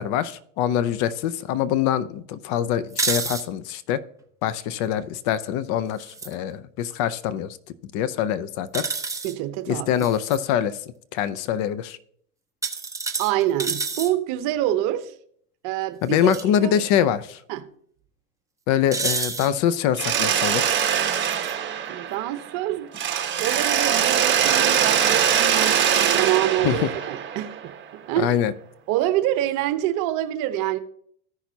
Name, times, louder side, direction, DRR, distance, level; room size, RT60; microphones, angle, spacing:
voice 1, 0.0-4.0 4.4-7.6 7.9-8.8 9.7-10.8 11.1-12.0 16.0-17.4 18.7-20.7 26.6-26.9 28.2-28.5, left 10 dB, 45° left, 0.6 m, -24 dB
sound 1, 2.9-3.4 6.0-6.3 8.7-9.3 10.0-10.4 12.6-14.1 16.2-16.4 16.8-16.9 18.9-19.5 20.9-21.5, right 4 dB, 5° right, 0.9 m, -29 dB
voice 2, 9.2-9.9 13.2-15.1 15.6-16.3 16.6-16.8 17.5-17.6 21.9-23.0 23.4-27.7 28.0-28.4 28.9-30.8, right 13 dB, 45° right, 0.9 m, -26 dB
Mechanisms, 20.0-22.6 22.9-27.8, right 8 dB, 25° right, 1.4 m, -22 dB
14.5 x 5.9 x 2.8 m
hypercardioid pair, 105°, 43 cm